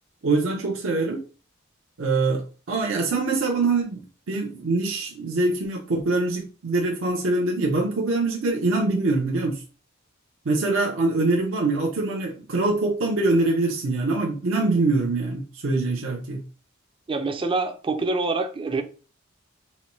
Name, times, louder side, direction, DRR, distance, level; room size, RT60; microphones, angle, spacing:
voice 1, 0.2-1.2 2.0-9.6 10.4-16.4, right 3 dB, 70° right, 0.6 m, -24 dB
voice 2, 17.1-18.8, right 3 dB, 25° right, 0.4 m, -25 dB
4.1 x 2.2 x 3.0 m
head